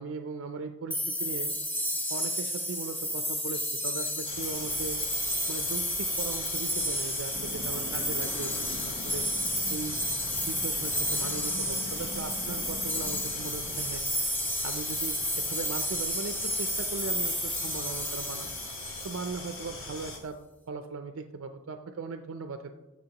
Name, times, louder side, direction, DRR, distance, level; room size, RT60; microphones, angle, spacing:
voice 1, 0.0-1.6 2.1-5.0 5.5-9.3 9.7-10.0 10.5-14.1 14.6-18.5 19.0-20.4 20.7-22.7, right 4 dB, 75° right, 7 dB, 0.5 m, -38 dB
sound 1, 0.9-19.6, equal, 10° left, 0.7 m, -32 dB
sound 2, 4.2-20.2, left 2 dB, 80° left, 1.9 m, -42 dB
sound 3, 7.3-14.0, left 1 dB, 55° left, 0.8 m, -43 dB
13.5 x 6.1 x 2.9 m, 1.1 s
head